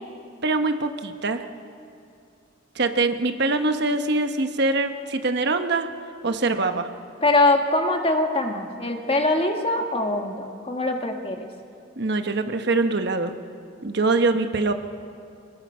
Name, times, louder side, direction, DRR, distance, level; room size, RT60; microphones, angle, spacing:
voice 1, 0.4-1.4 2.7-5.9 6.2-6.9 12.0-13.3 13.8-14.7, right 3 dB, 60° right, 7 dB, 1.2 m, -23 dB
voice 2, 7.2-11.4, left 2 dB, 30° left, 4 dB, 1.6 m, -23 dB
27.0 x 20.0 x 5.7 m, 2.5 s
head